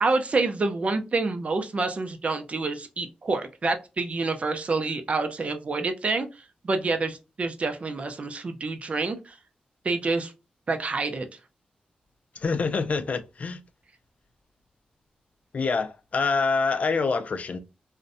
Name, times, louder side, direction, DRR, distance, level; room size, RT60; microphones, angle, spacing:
voice 1, 0.0-6.3 6.6-9.4 9.8-10.3 10.7-11.3, right 3 dB, 45° right, 0.4 m, -27 dB
voice 2, 12.3-13.6 15.5-17.6, left 4 dB, 55° left, 0.3 m, -26 dB
2.5 x 2.1 x 2.5 m
cardioid pair, 85°, 3 cm